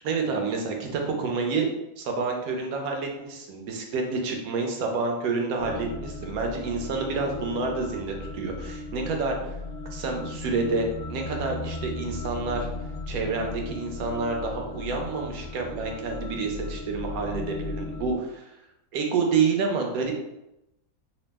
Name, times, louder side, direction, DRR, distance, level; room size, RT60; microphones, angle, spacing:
voice 1, 0.0-1.7 2.0-9.5 9.9-12.7 13.1-18.5 18.9-20.2, right 4 dB, 75° right, 2 dB, 1.0 m, -28 dB
sound 1, 5.6-18.1, left 2 dB, 65° left, 0.7 m, -36 dB
2.7 x 2.0 x 3.3 m, 0.89 s
omnidirectional pair, 1.6 m